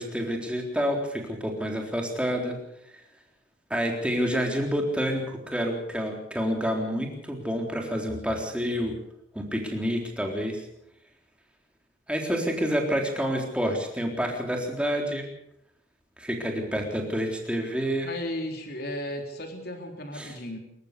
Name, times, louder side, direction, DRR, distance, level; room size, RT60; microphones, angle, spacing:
voice 1, 0.0-2.6 2.9-3.0 3.7-8.9 9.3-10.6 12.1-15.3 16.2-18.1 20.2-20.3, equal, 5° right, 2 dB, 3.8 m, -28 dB
voice 2, 18.0-20.6, left 1 dB, 55° left, 3 dB, 3.8 m, -35 dB
27.0 x 14.5 x 6.8 m, 0.75 s
head